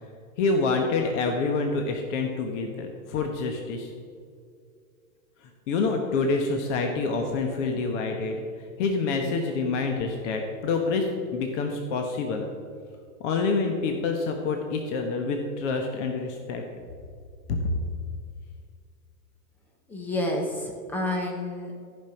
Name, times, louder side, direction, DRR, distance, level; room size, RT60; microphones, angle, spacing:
voice 1, 0.4-3.9 5.4-12.4 13.2-16.6 17.5-17.8, left 4 dB, 50° left, 3 dB, 1.2 m, -27 dB
voice 2, 19.9-21.7, left 1 dB, 5° left, 2 dB, 0.4 m, -29 dB
14.0 x 5.5 x 5.8 m, 2.3 s
supercardioid pair, 150°, 45 cm